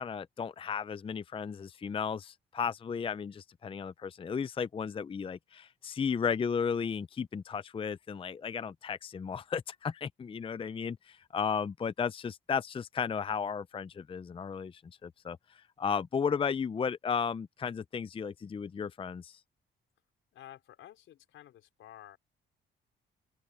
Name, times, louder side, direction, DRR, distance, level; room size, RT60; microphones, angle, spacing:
voice 1, 0.0-19.4, left 6 dB, 25° left, 0.5 m, -34 dB
voice 2, 20.3-22.2, left 12 dB, 80° left, 4.8 m, -52 dB
open air
cardioid pair, 90°, 20 cm